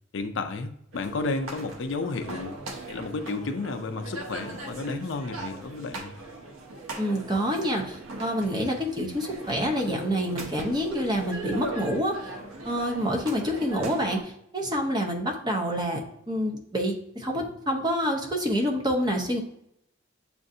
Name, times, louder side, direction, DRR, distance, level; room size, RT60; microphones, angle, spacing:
voice 1, 0.1-2.6 2.9-6.1, left 3 dB, 65° left, 7 dB, 0.4 m, -32 dB
sound 1, 0.9-14.2, right 2 dB, 90° right, 0.8 m, -39 dB
voice 2, 7.0-12.2 12.6-19.4, equal, 20° right, 1 dB, 0.7 m, -27 dB
7.5 x 2.5 x 2.6 m, 0.75 s
head